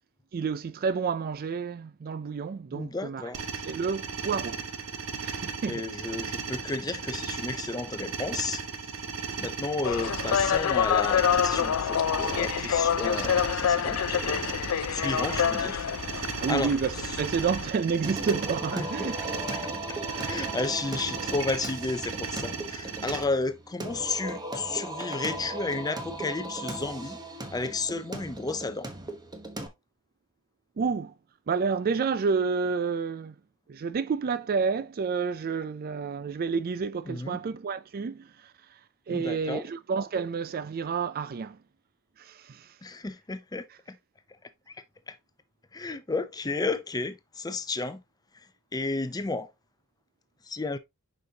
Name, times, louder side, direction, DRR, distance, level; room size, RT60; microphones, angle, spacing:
voice 1, 0.3-3.3 3.6-4.6 5.2-5.8 16.4-19.3 20.1-20.4 30.8-31.1 31.5-33.4 33.7-38.8 39.1-41.6 42.2-42.8, right 5 dB, 45° right, 0.4 m, -30 dB
voice 2, 2.7-3.5 5.6-8.6 9.4-14.4 14.9-15.8 16.1-16.7 18.8-20.0 20.2-27.2 27.5-28.9 37.1-37.4 39.1-39.6 42.8-44.0 45.1-45.2 45.7-48.0 48.3-48.5 48.7-49.5 50.4-50.8, left 3 dB, 20° left, 0.5 m, -33 dB
sound 1, 3.3-23.2, right 5 dB, 70° right, 1.1 m, -36 dB
sound 2, 9.8-17.7, left 8 dB, 80° left, 0.4 m, -27 dB
Singing, 18.0-29.7, right 1 dB, 20° right, 1.0 m, -37 dB
6.6 x 5.3 x 2.8 m
head